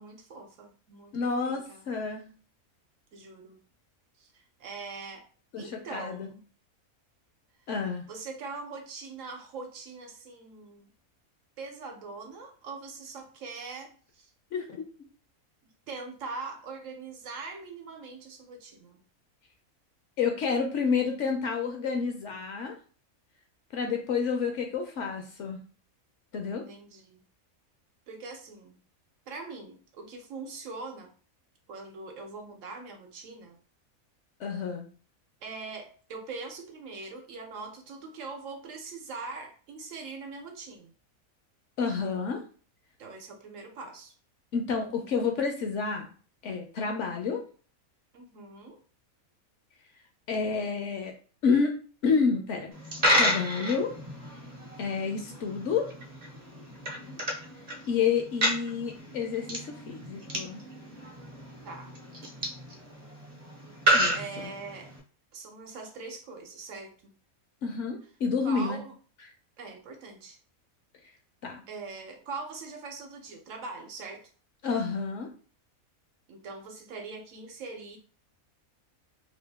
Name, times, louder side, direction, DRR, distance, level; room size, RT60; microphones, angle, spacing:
voice 1, 0.0-1.9 3.1-3.6 4.2-5.3 5.6-6.4 8.1-10.9 11.6-14.3 15.9-19.0 26.5-27.2 28.1-28.8 29.3-31.1 31.7-33.6 35.4-40.9 43.0-44.1 48.1-48.8 56.8-57.2 61.6-61.9 64.1-64.9 65.3-67.1 68.4-68.9 69.6-70.4 71.7-74.3 76.3-78.0, right 4 dB, 70° right, 4 dB, 1.0 m, -42 dB
voice 2, 1.1-2.2 5.5-6.3 7.7-8.0 14.5-14.9 20.2-22.7 23.7-25.6 26.3-26.6 34.4-34.8 41.8-42.4 44.5-46.1 46.4-47.4 50.3-51.1 51.4-51.8 52.0-52.7 53.1-53.9 54.8-55.9 57.9-60.6 63.9-64.5 67.6-68.8 71.4-71.6 74.6-75.3, left 5 dB, 65° left, 3 dB, 0.9 m, -29 dB
Coin (dropping), 52.7-65.0, right 1 dB, 40° right, 0.6 m, -31 dB
2.9 x 2.5 x 3.4 m, 0.39 s
omnidirectional pair, 1.5 m